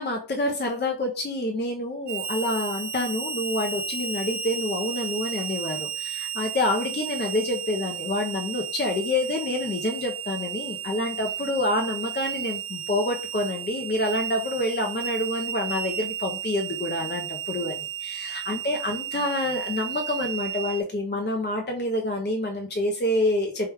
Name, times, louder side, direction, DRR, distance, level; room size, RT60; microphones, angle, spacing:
voice 1, 0.0-23.7, left 1 dB, 25° left, 2 dB, 0.5 m, -27 dB
Harmonica, 2.1-20.8, right 8 dB, 65° right, 0.5 m, -33 dB
4.6 x 2.2 x 3.3 m, 0.39 s
wide cardioid pair, 100°, 45 cm